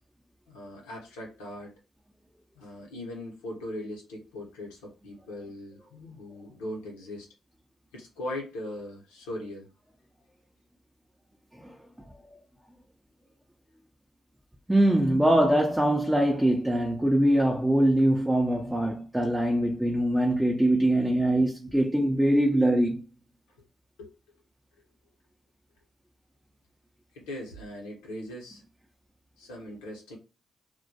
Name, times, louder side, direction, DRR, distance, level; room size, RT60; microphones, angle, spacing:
voice 1, 0.5-1.7 2.5-7.3 7.9-9.7 24.0-24.1 27.1-28.6 29.4-30.2, left 1 dB, 90° left, 0.7 m, -39 dB
voice 2, 14.7-23.0, right 1 dB, 10° right, 0.5 m, -23 dB
2.2 x 2.1 x 2.6 m
hypercardioid pair, 45°, 0 cm